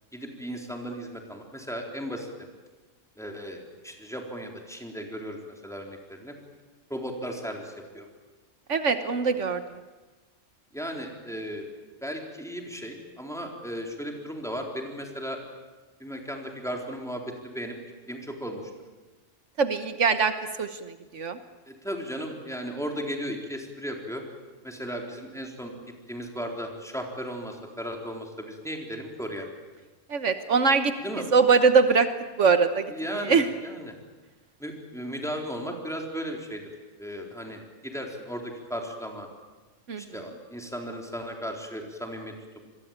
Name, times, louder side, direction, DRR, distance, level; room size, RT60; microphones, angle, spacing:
voice 1, 0.1-2.5 3.2-6.3 6.9-8.1 9.3-9.4 10.7-11.7 12.0-15.4 16.0-17.7 18.1-18.7 21.7-24.2 24.6-29.5 31.0-31.3 32.9-33.9 34.6-36.7 37.0-39.3 40.0-42.6, equal, ahead, 1 dB, 3.9 m, -36 dB
voice 2, 8.7-9.8 19.6-21.4 30.1-30.9 31.3-32.1 32.4-33.5 39.9-40.0, right 5 dB, 70° right, 9 dB, 1.5 m, -22 dB
26.5 x 22.0 x 8.9 m, 1.3 s
omnidirectional pair, 1.3 m